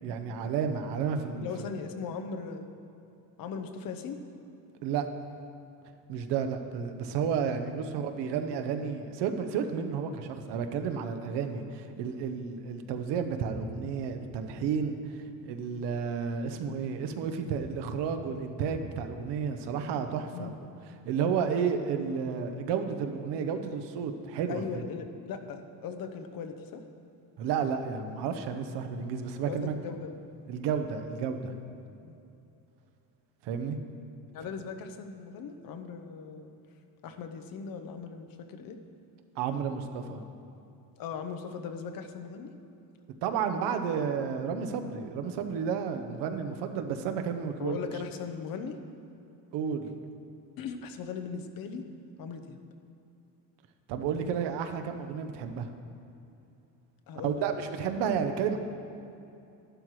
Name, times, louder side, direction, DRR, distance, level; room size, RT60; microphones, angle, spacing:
voice 1, 0.0-1.5 4.8-5.1 6.1-20.5 21.0-24.8 27.4-29.7 30.5-31.5 33.4-33.8 39.4-40.2 43.2-47.8 49.5-49.9 53.9-55.7 57.2-58.6, right 6 dB, 80° right, 7 dB, 0.9 m, -31 dB
voice 2, 1.4-2.7 3.4-4.2 20.3-20.5 24.5-26.8 29.4-30.1 32.0-32.2 34.3-36.5 37.0-38.8 41.0-42.5 47.6-48.8 50.6-51.8 52.2-52.6 57.1-57.4, left 6 dB, 55° left, 7 dB, 0.9 m, -39 dB
12.0 x 11.5 x 3.2 m, 2.7 s
cardioid pair, 145°, 41 cm